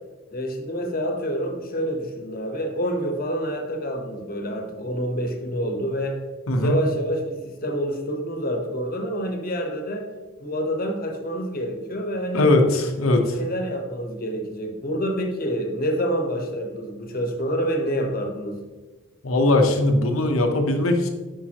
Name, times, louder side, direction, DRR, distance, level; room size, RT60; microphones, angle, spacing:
voice 1, 0.3-6.2 6.6-10.1 10.4-12.5 13.0-18.6, equal, 45° left, 3 dB, 1.1 m, -27 dB
voice 2, 6.5-6.8 12.3-13.4 19.2-21.1, left 2 dB, 80° left, 4 dB, 0.9 m, -20 dB
8.6 x 5.5 x 2.9 m, 1.3 s
head